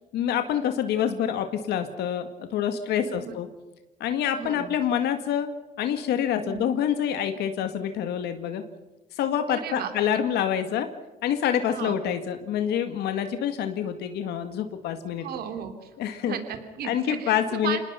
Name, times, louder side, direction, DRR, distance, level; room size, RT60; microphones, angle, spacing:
voice 1, 0.1-3.5 4.0-5.5 5.8-8.6 9.1-10.9 11.2-15.3 16.0-16.4 16.8-17.8, left 9 dB, 75° left, 8 dB, 2.0 m, -27 dB
voice 2, 3.0-3.3 4.4-4.7 6.4-6.6 9.5-9.9 11.7-12.0 15.2-15.9 16.3-17.4 17.6-17.8, right 8 dB, 65° right, 7 dB, 3.0 m, -34 dB
27.0 x 19.5 x 5.8 m, 1.1 s
cardioid pair, 110°, 17 cm